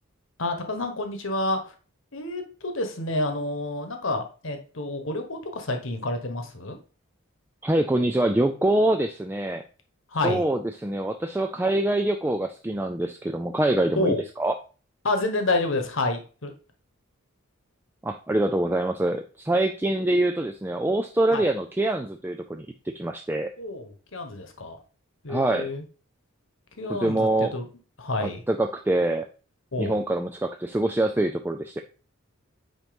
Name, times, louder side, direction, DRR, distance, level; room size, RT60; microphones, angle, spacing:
voice 1, 0.4-1.7 2.1-6.8 10.1-10.4 14.0-14.2 15.0-16.5 21.3-21.5 23.6-24.8 25.2-25.8 26.8-27.7 28.0-28.4 29.7-30.0, left 2 dB, 65° left, 5 dB, 1.2 m, -29 dB
voice 2, 7.6-9.6 10.2-14.5 18.0-23.5 25.3-25.7 26.9-27.5 28.2-29.3 29.8-31.8, right 1 dB, 10° right, 5 dB, 0.3 m, -25 dB
9.1 x 3.0 x 5.1 m, 0.37 s
head